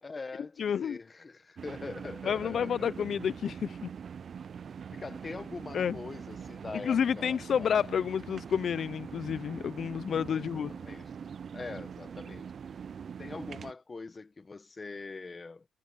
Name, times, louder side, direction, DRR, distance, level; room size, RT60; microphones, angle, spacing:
voice 1, 0.0-3.1 4.9-7.7 10.3-11.1 11.5-12.5 13.2-15.7, left 3 dB, 30° left, 1.0 m, -43 dB
voice 2, 0.6-1.0 2.3-3.9 5.7-6.0 6.7-10.7, left 8 dB, 55° left, 0.5 m, -30 dB
sound 1, 1.6-13.7, right 7 dB, 50° right, 0.5 m, -43 dB
cardioid pair, 90°, 0 cm